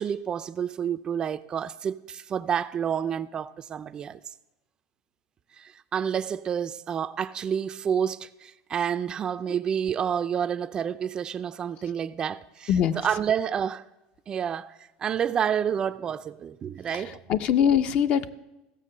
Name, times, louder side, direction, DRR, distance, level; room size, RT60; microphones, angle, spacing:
voice 1, 0.0-4.2 5.6-12.7 13.0-13.8 14.3-17.2, right 8 dB, 30° right, 0.4 m, -29 dB
voice 2, 16.9-18.3, left 8 dB, 45° left, 0.6 m, -23 dB
15.5 x 6.7 x 6.5 m
supercardioid pair, 125°, 3 cm